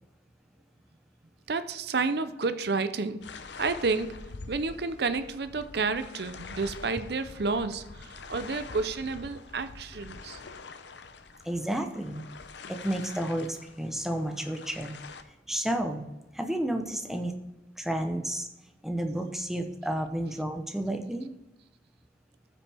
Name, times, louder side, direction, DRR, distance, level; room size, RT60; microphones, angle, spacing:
voice 1, 1.5-3.2 3.6-4.1 4.5-10.4, right 4 dB, 60° right, 11 dB, 0.6 m, -30 dB
sound 1, 3.2-15.2, left 4 dB, 75° left, 0.7 m, -45 dB
voice 2, 11.4-12.2 12.7-14.9 15.5-16.0 16.3-17.3 17.8-18.5 18.8-21.3, right 1 dB, ahead, 4 dB, 0.7 m, -31 dB
14.0 x 6.1 x 3.5 m, 0.98 s
head